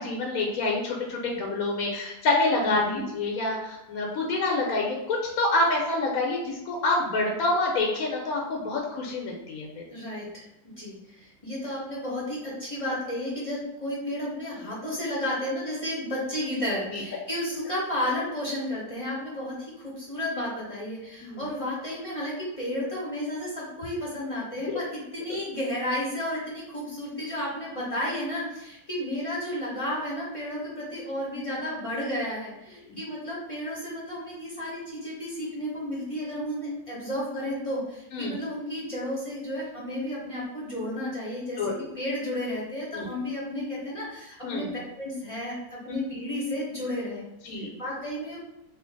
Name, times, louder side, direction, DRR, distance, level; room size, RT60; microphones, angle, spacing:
voice 1, 0.0-9.8 16.9-17.0 21.2-21.4 24.7-24.8 38.1-38.3 41.6-41.8 42.9-43.1 44.4-44.7 47.5-47.7, left 2 dB, 70° left, -1 dB, 1.0 m, -27 dB
voice 2, 2.6-3.0 9.9-41.6 41.9-44.7 45.0-47.3 47.5-48.4, left 1 dB, 30° left, -6 dB, 0.6 m, -32 dB
2.8 x 2.5 x 3.8 m, 0.92 s
omnidirectional pair, 1.7 m